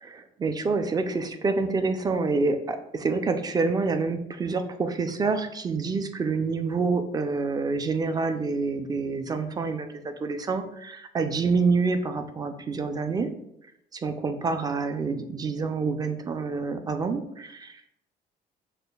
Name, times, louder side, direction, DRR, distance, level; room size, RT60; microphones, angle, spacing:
voice 1, 0.0-13.3 13.9-17.9, right 4 dB, 25° right, 8 dB, 0.4 m, -27 dB
6.4 x 2.5 x 2.2 m, 0.79 s
cardioid pair, 110°, 17 cm